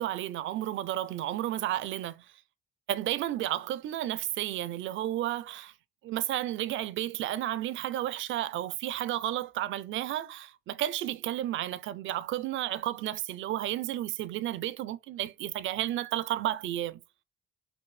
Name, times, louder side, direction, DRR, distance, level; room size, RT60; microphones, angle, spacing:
voice 1, 0.0-2.3 2.9-5.7 6.0-17.0, right 13 dB, 75° right, 0.5 m, -32 dB
6.0 x 2.6 x 3.2 m
cardioid pair, 90°, 20 cm